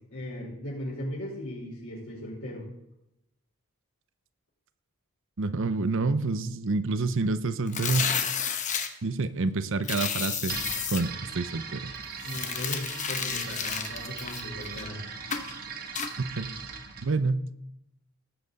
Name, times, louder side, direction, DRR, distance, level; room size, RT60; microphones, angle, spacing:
voice 1, 0.1-2.7 12.2-15.0, left 1 dB, 70° left, -5 dB, 4.5 m, -37 dB
voice 2, 5.4-8.1 9.0-10.6 10.9-11.9 16.2-16.5 17.0-17.4, right 3 dB, 60° right, 13 dB, 0.7 m, -28 dB
sound 1, 7.7-8.9 9.8-11.0 12.2-14.9 15.3-15.5 16.0-16.1, left 7 dB, 35° left, 1.0 m, -31 dB
sound 2, 10.5-17.1, right 6 dB, 40° right, 1.4 m, -39 dB
18.5 x 7.8 x 4.0 m, 0.86 s
head